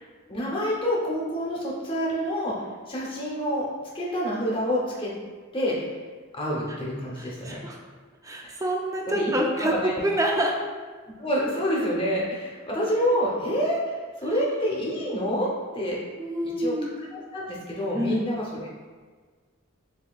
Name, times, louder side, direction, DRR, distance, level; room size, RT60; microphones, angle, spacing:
voice 1, 0.3-2.5 2.9-3.6 3.9-5.1 5.5-5.9 6.3-7.6 9.1-9.3 9.6-10.0 11.2-13.8 14.2-16.0 16.4-18.7, equal, 25° left, -4 dB, 0.7 m, -27 dB
voice 2, 7.2-7.8 8.2-10.5 16.2-16.9 17.9-18.2, right 1 dB, 15° right, 0 dB, 0.3 m, -27 dB
7.1 x 2.7 x 2.3 m, 1.5 s
head